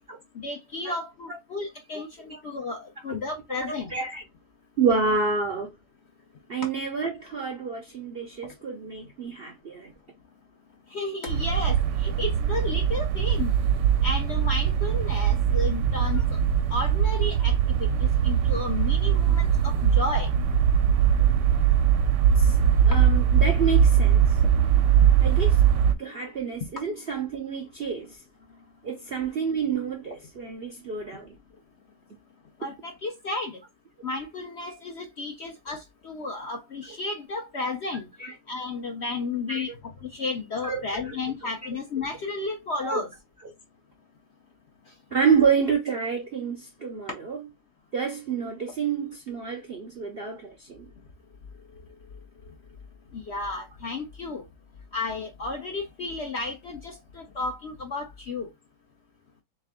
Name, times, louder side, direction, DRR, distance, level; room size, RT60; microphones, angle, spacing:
voice 1, 0.3-3.9 10.9-13.5 14.0-16.4 16.7-20.3 32.6-33.6 34.0-38.1 38.5-43.1 53.1-54.4 54.9-58.5, left 3 dB, 60° left, 0.7 m, -33 dB
voice 2, 3.7-4.2 4.8-5.7 6.5-9.9 22.4-22.5 22.9-24.4 25.2-25.5 26.0-28.1 28.8-31.3 38.2-38.3 39.5-39.7 40.6-40.8 42.9-43.0 45.1-47.4 47.9-50.9, right 5 dB, 55° right, 0.6 m, -28 dB
sound 1, 11.3-25.9, right 8 dB, 85° right, 1.3 m, -21 dB
3.5 x 3.3 x 3.5 m
omnidirectional pair, 1.8 m